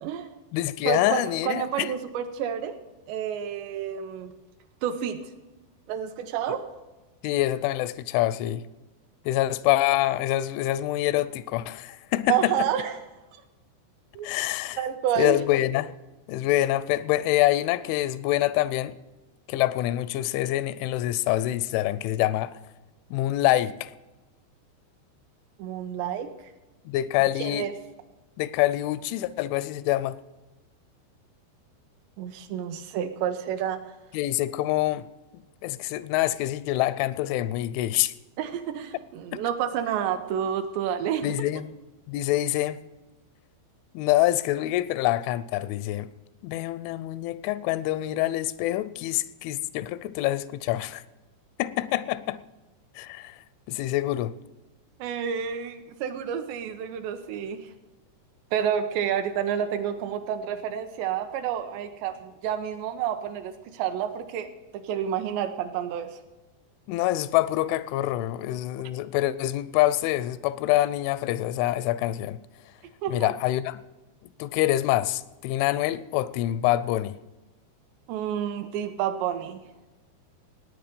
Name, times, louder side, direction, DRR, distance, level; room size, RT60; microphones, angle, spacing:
voice 1, 0.0-0.3 0.9-2.8 3.1-4.3 4.8-5.2 5.9-6.6 12.3-13.0 14.2-14.3 14.8-15.4 25.6-26.3 27.4-27.7 32.2-33.8 38.4-41.3 55.0-57.6 58.5-64.5 64.7-66.2 73.0-73.3 78.1-79.6, right 9 dB, 80° right, 2.9 m, -29 dB
voice 2, 0.5-1.9 7.2-8.7 9.3-12.5 14.2-14.8 15.2-15.9 16.3-18.9 19.5-22.6 23.1-23.9 26.9-27.7 28.4-30.2 34.1-35.1 35.6-38.1 39.3-39.4 41.2-41.7 42.1-42.8 43.9-46.1 46.4-51.0 51.6-52.4 53.0-53.4 53.7-54.4 66.9-72.4 73.1-73.8 74.4-77.2, left 15 dB, 90° left, 3.0 m, -26 dB
17.5 x 9.3 x 5.2 m
omnidirectional pair, 5.3 m